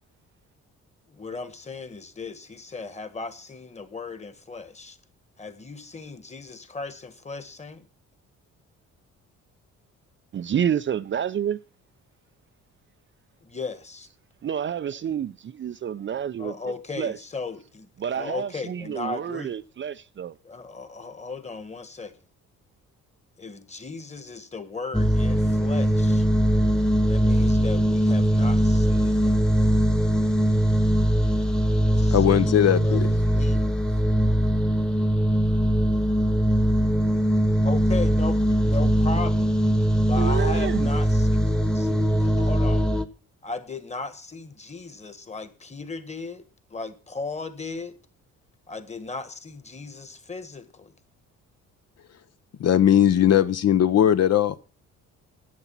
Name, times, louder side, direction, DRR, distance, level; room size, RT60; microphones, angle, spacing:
voice 1, 1.1-5.0 5.4-7.9 13.4-14.1 16.4-19.5 20.4-22.1 23.4-26.3 27.1-29.5 30.1-30.2 31.9-33.8 37.6-39.6 40.1-42.9 43.4-46.4 46.7-48.0 48.7-50.9, left 3 dB, 20° left, 1.5 m, -36 dB
voice 2, 10.3-11.6 14.4-17.2 18.0-20.4 40.2-41.0, right 9 dB, 40° right, 0.5 m, -29 dB
sound 1, 24.9-43.0, equal, ahead, 1.1 m, -21 dB
voice 3, 32.1-33.1 52.6-54.6, left 10 dB, 55° left, 0.8 m, -19 dB
11.0 x 8.2 x 5.9 m
cardioid pair, 90°, 30 cm